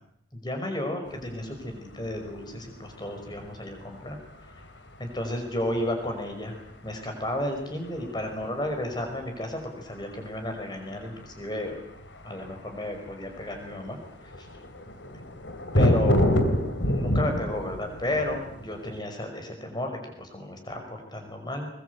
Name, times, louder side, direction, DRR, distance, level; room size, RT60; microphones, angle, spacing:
voice 1, 0.3-4.2 5.0-6.6 6.8-11.8 12.2-14.0 14.4-14.5 15.7-16.3 16.8-21.7, left 1 dB, 25° left, 4 dB, 5.5 m, -33 dB
sound 1, 1.1-19.0, equal, 75° left, 2.9 m, -29 dB
22.0 x 22.0 x 8.3 m, 0.77 s
head